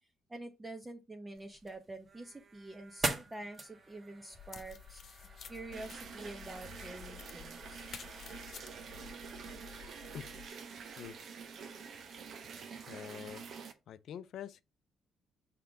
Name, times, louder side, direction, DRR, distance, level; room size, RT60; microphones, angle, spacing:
voice 1, 0.3-5.0 5.5-7.9, right 2 dB, 20° right, 0.9 m, -47 dB
sound 1, 1.3-12.3, right 3 dB, 40° right, 1.5 m, -45 dB
sound 2, 4.3-10.5, left 8 dB, 55° left, 1.0 m, -52 dB
sound 3, 5.7-13.7, right 6 dB, 60° right, 1.0 m, -48 dB
voice 2, 12.9-13.5 13.9-14.6, left 9 dB, 70° left, 0.5 m, -45 dB
5.7 x 3.8 x 4.8 m
cardioid pair, 90°, 0 cm